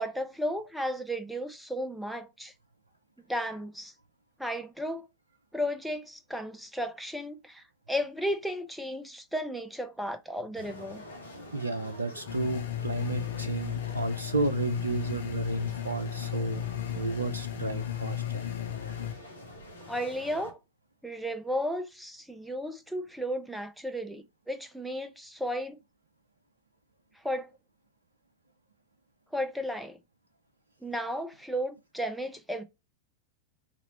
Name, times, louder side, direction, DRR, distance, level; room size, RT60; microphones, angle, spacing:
voice 1, 0.0-2.5 3.3-3.9 4.4-5.1 5.5-11.0 19.9-20.6 21.0-25.8 27.2-27.5 29.3-30.0 30.8-32.6, equal, ahead, 0.5 m, -34 dB
sound 1, 10.5-20.5, left 1 dB, 80° left, 1.2 m, -47 dB
voice 2, 11.5-16.6 17.0-18.4, right 3 dB, 80° right, 0.4 m, -32 dB
sound 2, 12.3-19.1, left 11 dB, 60° left, 0.7 m, -34 dB
4.0 x 3.0 x 4.1 m
figure-of-eight pair, 90°, 0 cm